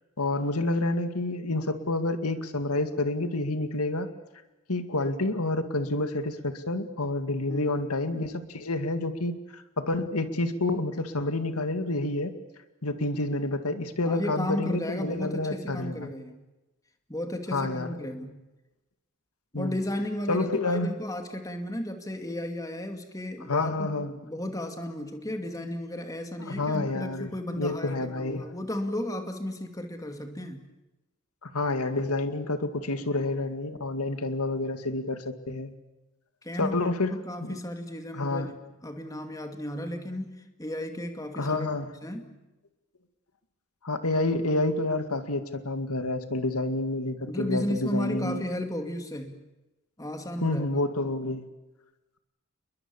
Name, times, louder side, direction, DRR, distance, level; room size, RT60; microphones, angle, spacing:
voice 1, 0.2-4.1 4.7-12.3 12.8-16.1 17.5-18.0 19.5-19.8 20.3-20.9 23.5-24.2 26.4-28.5 31.4-35.7 36.6-37.1 37.4-37.6 38.1-38.5 41.4-41.9 43.8-48.5 50.4-51.5, left 2 dB, 85° left, 9 dB, 2.2 m, -29 dB
voice 2, 14.0-16.4 17.1-18.4 19.5-30.7 36.4-38.5 38.8-40.3 40.6-41.7 42.0-42.3 47.2-49.4 50.0-50.8, left 1 dB, 15° left, 5 dB, 2.4 m, -34 dB
29.5 x 22.0 x 7.2 m, 1.0 s
head